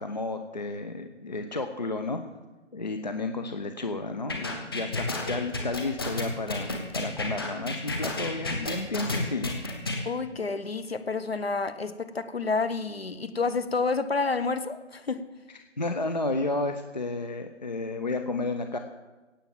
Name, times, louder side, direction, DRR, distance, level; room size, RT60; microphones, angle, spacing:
voice 1, 0.0-2.2 2.7-9.6 15.8-18.8, left 2 dB, 35° left, 7 dB, 0.7 m, -32 dB
sound 1, 4.3-10.0, left 2 dB, 20° left, 1.3 m, -31 dB
voice 2, 10.0-15.2, left 4 dB, 55° left, 13 dB, 1.1 m, -29 dB
17.0 x 7.2 x 7.6 m, 1.2 s
figure-of-eight pair, 160°, 36 cm